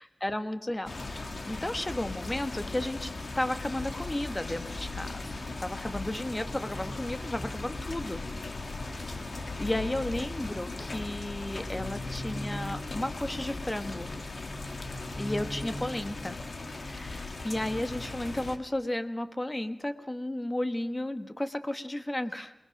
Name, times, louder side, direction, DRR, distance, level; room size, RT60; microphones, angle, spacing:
voice 1, 0.0-5.3 5.6-8.2 9.6-14.1 15.2-16.3 16.7-22.5, left 1 dB, 20° left, 9 dB, 1.4 m, -33 dB
sound 1, 0.9-18.6, left 2 dB, 55° left, 1.8 m, -37 dB
27.5 x 20.0 x 6.0 m, 0.92 s
wide cardioid pair, 65°, 0 cm